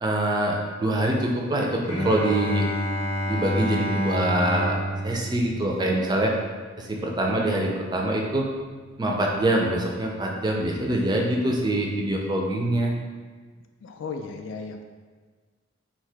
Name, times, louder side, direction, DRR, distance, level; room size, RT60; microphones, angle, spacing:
voice 1, 0.0-2.7 3.3-4.8 5.0-6.3 6.8-8.5 9.0-13.0, right 1 dB, 20° right, 0 dB, 0.4 m, -24 dB
Bowed string instrument, 1.8-7.6, equal, 30° left, 0.7 m, -29 dB
voice 2, 13.8-14.8, left 4 dB, 75° left, 6 dB, 0.3 m, -35 dB
2.8 x 2.8 x 3.3 m, 1.5 s
head